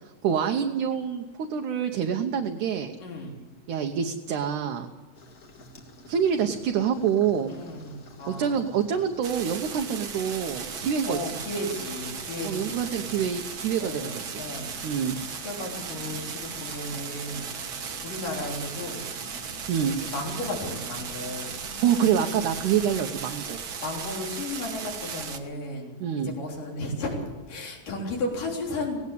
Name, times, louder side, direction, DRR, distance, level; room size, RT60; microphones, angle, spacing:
voice 1, 0.2-1.2 1.5-3.0 3.7-4.9 6.1-7.5 8.3-11.2 12.4-14.4 14.8-15.2 19.7-20.0 21.8-23.6 26.0-26.3, right 8 dB, 70° right, 3 dB, 2.3 m, -26 dB
voice 2, 3.0-3.4 7.5-8.7 11.0-13.2 13.8-14.7 15.4-17.5 18.0-19.1 20.0-21.6 23.8-29.0, left 2 dB, 70° left, 0 dB, 5.3 m, -34 dB
sound 1, 5.1-23.0, left 1 dB, 35° left, 1.6 m, -48 dB
sound 2, 9.2-25.4, right 6 dB, 50° right, 1.6 m, -36 dB
18.0 x 17.0 x 8.4 m, 1.4 s
omnidirectional pair, 4.0 m